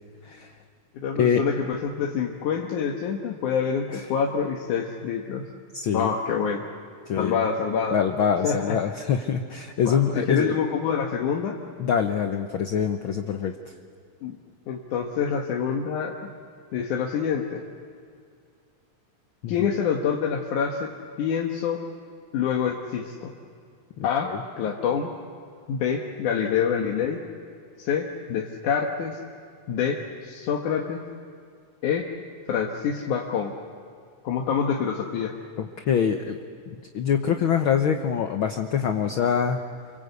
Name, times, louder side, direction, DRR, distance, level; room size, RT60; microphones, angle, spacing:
voice 1, 0.9-5.5 5.9-6.6 7.2-8.0 8.4-8.8 9.8-11.6 14.2-14.4 14.7-16.2 16.7-17.6 19.5-20.9 21.2-21.8 22.3-23.3 24.0-24.3 24.6-25.1 25.7-27.2 27.8-29.2 29.7-31.0 31.8-32.1 32.5-33.5 34.2-35.3, left 7 dB, 90° left, 0 dB, 2.9 m, -26 dB
voice 2, 5.7-6.1 7.1-7.5 7.9-10.5 11.8-13.5 19.4-19.7 24.0-24.4 35.6-36.4 36.7-39.6, left 7 dB, 60° left, 6 dB, 1.4 m, -24 dB
29.5 x 23.5 x 8.2 m, 2.3 s
omnidirectional pair, 3.4 m